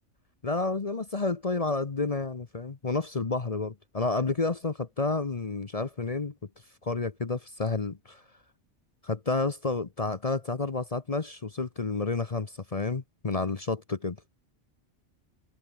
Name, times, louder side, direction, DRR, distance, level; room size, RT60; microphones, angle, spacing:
voice 1, 0.4-6.3 6.8-8.2 9.0-14.2, left 3 dB, 35° left, 1.0 m, -30 dB
omnidirectional pair, 1.2 m